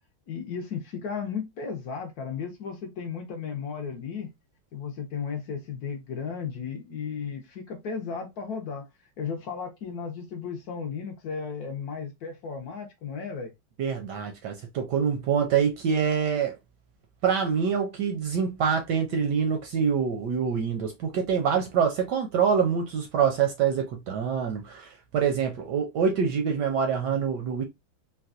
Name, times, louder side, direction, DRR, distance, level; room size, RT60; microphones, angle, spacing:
voice 1, 0.3-4.3 4.7-8.9 9.2-13.5, left 6 dB, 70° left, 0.9 m, -34 dB
voice 2, 13.8-16.6 17.2-27.6, right 7 dB, 75° right, 1.0 m, -25 dB
4.0 x 2.2 x 2.5 m
omnidirectional pair, 2.3 m